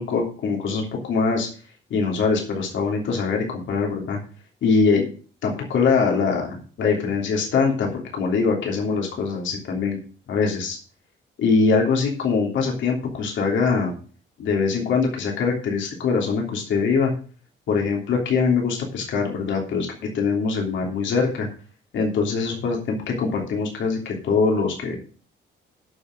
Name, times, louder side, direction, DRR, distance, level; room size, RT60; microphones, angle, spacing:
voice 1, 0.0-1.5 1.9-4.2 4.6-5.1 5.4-10.0 10.3-10.8 11.4-13.9 14.4-17.1 17.7-21.5 21.9-25.0, left 4 dB, 75° left, 0 dB, 3.2 m, -23 dB
9.6 x 5.9 x 7.7 m, 0.40 s
cardioid pair, 90°, 20 cm